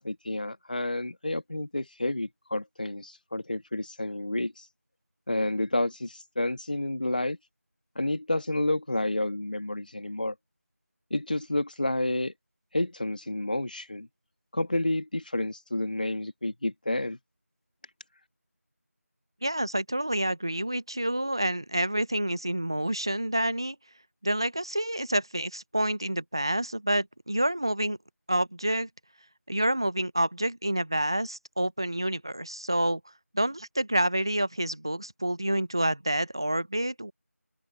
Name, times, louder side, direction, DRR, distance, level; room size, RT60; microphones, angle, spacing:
voice 1, 0.0-4.7 5.3-7.4 7.9-10.3 11.1-12.3 12.7-14.1 14.5-17.2, left 1 dB, 35° left, 1.5 m, -30 dB
voice 2, 19.4-23.8 24.2-28.0 28.3-28.9 29.5-33.0 33.3-37.1, right 1 dB, 15° right, 0.7 m, -28 dB
open air
figure-of-eight pair, 175°, 8 cm